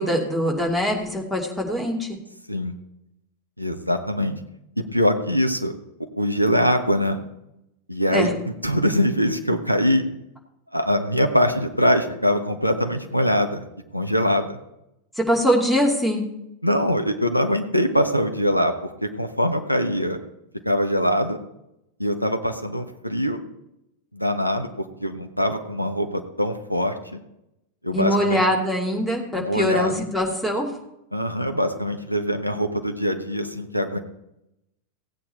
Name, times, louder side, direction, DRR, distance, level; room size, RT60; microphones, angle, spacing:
voice 1, 0.0-2.2 8.1-8.3 15.2-16.2 27.9-30.7, equal, 5° left, 0 dB, 2.6 m, -22 dB
voice 2, 3.6-4.4 4.8-5.7 6.2-7.2 7.9-10.0 10.7-13.6 13.9-14.6 16.6-20.2 20.6-21.4 22.0-23.4 24.1-27.2 27.8-28.4 29.4-30.0 31.1-34.0, equal, 90° left, 6 dB, 1.2 m, -23 dB
16.0 x 8.7 x 4.4 m, 0.86 s
figure-of-eight pair, 90°, 0 cm